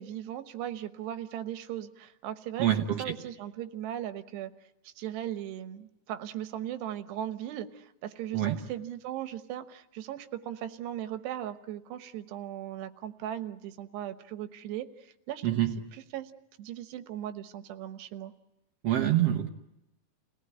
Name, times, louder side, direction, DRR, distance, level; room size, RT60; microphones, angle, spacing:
voice 1, 0.0-2.7 3.0-4.5 4.8-15.5 15.9-16.3 16.6-18.3, right 11 dB, 90° right, 10 dB, 3.2 m, -38 dB
voice 2, 2.6-3.0 8.3-8.6 15.4-15.8 18.8-19.5, right 12 dB, 70° right, 2 dB, 1.5 m, -26 dB
29.5 x 18.5 x 9.8 m, 0.91 s
omnidirectional pair, 4.7 m